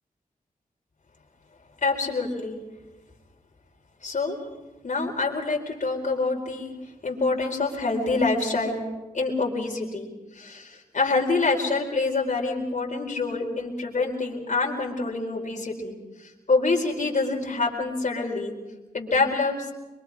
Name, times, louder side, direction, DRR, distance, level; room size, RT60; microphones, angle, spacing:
voice 1, 1.8-2.6 4.0-4.4 4.8-6.7 7.0-8.8 9.1-18.5 18.9-19.7, left 3 dB, 55° left, 0 dB, 4.5 m, -26 dB
25.0 x 23.5 x 4.9 m, 1.1 s
cardioid pair, 70°, 15 cm